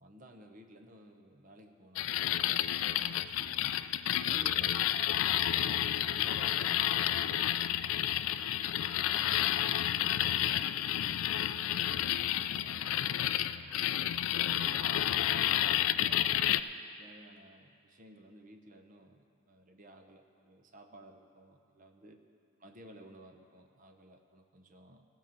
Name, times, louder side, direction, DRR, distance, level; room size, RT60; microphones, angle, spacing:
voice 1, 0.0-4.8 5.4-7.7 8.3-9.5 10.0-13.8 14.3-22.2 22.6-25.0, right 1 dB, 40° right, 5 dB, 0.8 m, -55 dB
sound 1, 2.0-16.6, left 12 dB, 70° left, 0.3 m, -30 dB
16.0 x 5.5 x 7.5 m, 2.2 s
head